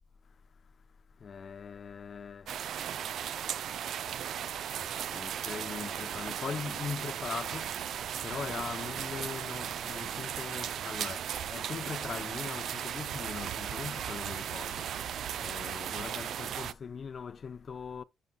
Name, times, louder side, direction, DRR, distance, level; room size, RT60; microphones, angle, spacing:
voice 1, 1.2-2.5 5.1-7.7 8.2-14.9 15.4-18.0, left 6 dB, 45° left, 0.6 m, -40 dB
sound 1, 2.5-16.7, right 9 dB, 70° right, 0.4 m, -36 dB
10.5 x 6.3 x 2.2 m
cardioid pair, 90°, 0 cm